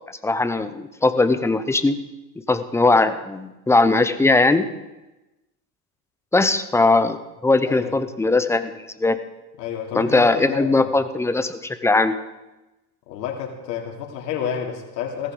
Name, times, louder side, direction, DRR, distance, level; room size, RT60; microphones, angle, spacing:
voice 1, 0.2-2.0 2.5-4.7 6.3-9.2 9.9-12.2, left 3 dB, 5° left, 11 dB, 0.5 m, -19 dB
voice 2, 7.6-8.0 9.6-11.0 13.1-15.3, left 8 dB, 80° left, 1 dB, 3.0 m, -30 dB
17.0 x 14.5 x 3.8 m, 1.0 s
supercardioid pair, 115°, 49 cm